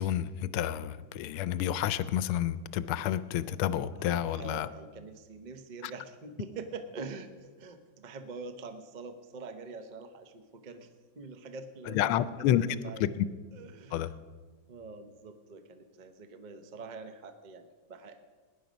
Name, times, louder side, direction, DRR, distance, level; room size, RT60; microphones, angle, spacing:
voice 1, 0.0-4.7 11.9-12.7 13.2-13.3 13.9-14.1, left 11 dB, 85° left, 15 dB, 1.5 m, -29 dB
voice 2, 3.9-10.9 11.2-13.1 13.5-14.1 14.7-18.3, right 4 dB, 85° right, 8 dB, 0.4 m, -45 dB
18.0 x 10.0 x 5.2 m, 1.5 s
omnidirectional pair, 2.3 m